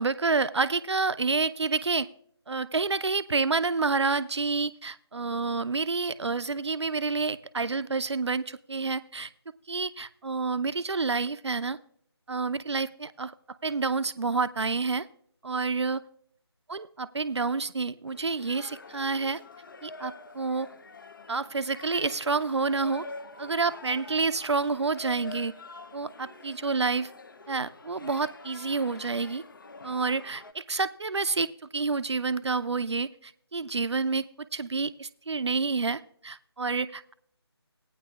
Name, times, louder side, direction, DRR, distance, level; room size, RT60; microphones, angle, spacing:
voice 1, 0.0-2.1 2.5-9.3 9.7-11.8 12.3-13.3 13.6-15.1 15.4-16.0 16.7-19.4 19.8-20.7 21.3-23.1 23.4-25.5 25.9-27.1 27.5-29.4 29.8-37.1, right 4 dB, 75° right, 14 dB, 0.5 m, -29 dB
sound 1, 18.1-30.5, left 3 dB, 50° left, 0.7 m, -46 dB
17.0 x 9.4 x 2.4 m, 0.64 s
figure-of-eight pair, 160°, 14 cm